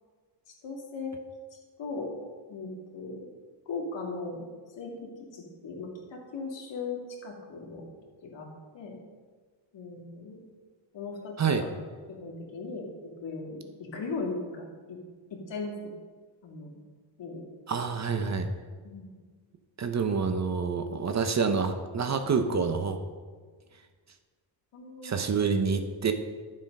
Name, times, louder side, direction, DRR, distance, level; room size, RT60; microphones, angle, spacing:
voice 1, 0.6-1.1 1.5-2.1 2.5-3.1 3.7-4.5 4.8-7.8 8.2-8.5 8.7-9.0 9.7-10.4 10.9-11.7 12.1-15.0 15.3-15.9 16.4-16.7 17.2-17.4 18.8-19.1 24.7-25.2, left 3 dB, 70° left, -1 dB, 2.6 m, -38 dB
voice 2, 17.7-18.5 19.8-23.0 25.0-26.1, right 5 dB, 35° right, 7 dB, 0.7 m, -27 dB
11.5 x 7.4 x 5.3 m, 1.5 s
wide cardioid pair, 180°, 46 cm